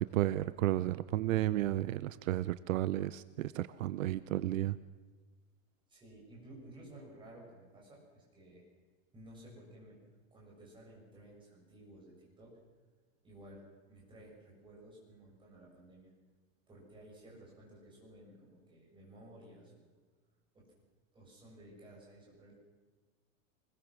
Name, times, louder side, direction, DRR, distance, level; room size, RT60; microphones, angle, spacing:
voice 1, 0.0-4.8, right 14 dB, 70° right, 16 dB, 0.8 m, -32 dB
voice 2, 5.9-8.6 9.1-10.0 10.3-12.6 13.2-16.1 16.7-19.9 20.5-20.7 21.1-22.6, right 1 dB, 10° right, -3 dB, 7.2 m, -55 dB
23.5 x 21.5 x 6.2 m, 1.3 s
supercardioid pair, 175°, 41 cm